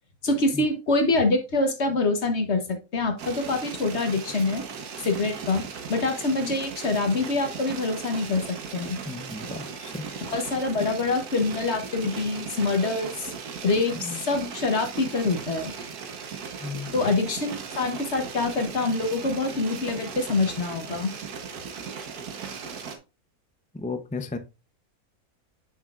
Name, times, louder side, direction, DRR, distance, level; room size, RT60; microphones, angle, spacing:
voice 1, 0.2-4.6 5.0-5.6 5.9-9.0 10.3-13.3 13.6-15.7 16.9-21.1, left 3 dB, 50° left, 1.3 m, -25 dB
sound 1, 3.2-23.0, right 6 dB, 75° right, 1.6 m, -37 dB
voice 2, 9.0-10.2 13.9-14.2 16.6-16.9 23.7-24.4, left 4 dB, 10° left, 0.3 m, -34 dB
8.2 x 6.1 x 2.5 m
omnidirectional pair, 1.6 m